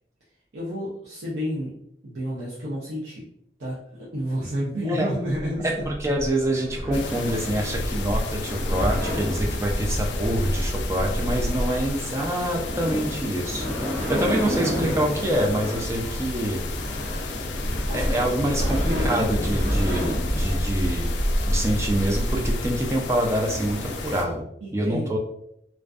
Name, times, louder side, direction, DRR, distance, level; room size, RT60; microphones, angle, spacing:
voice 1, 0.5-1.7 2.0-3.2 3.6-5.7 14.4-15.0 17.9-19.8 24.6-25.2, equal, 85° right, -7 dB, 0.6 m, -31 dB
sound 1, 5.3-23.9, equal, 55° right, 0.8 m, -28 dB
voice 2, 5.6-13.6 14.1-16.6 17.9-21.1 21.5-24.4 24.7-25.2, right 1 dB, 15° right, 0 dB, 0.3 m, -26 dB
sound 2, 6.9-24.3, left 4 dB, 80° left, 0.3 m, -34 dB
sound 3, 7.5-24.3, equal, 5° left, 0.7 m, -47 dB
2.5 x 2.2 x 2.3 m, 0.74 s
head